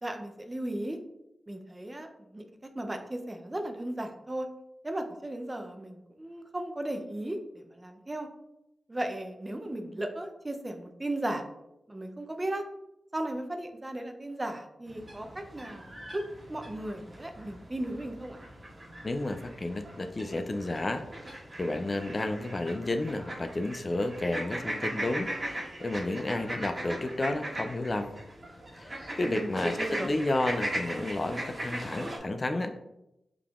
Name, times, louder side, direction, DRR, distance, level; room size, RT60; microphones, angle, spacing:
voice 1, 0.0-1.0 1.5-2.1 2.3-2.5 2.7-4.5 4.8-8.3 8.9-11.4 11.9-12.6 13.1-16.2 16.5-18.4 29.2-30.1, right 1 dB, 25° right, 4 dB, 0.6 m, -36 dB
sound 1, 14.9-32.2, right 1 dB, 45° right, 1.4 m, -39 dB
voice 2, 19.0-28.1 28.8-32.8, left 2 dB, 40° left, 7 dB, 0.4 m, -32 dB
4.8 x 3.5 x 2.4 m, 0.88 s
cardioid pair, 45°, 0 cm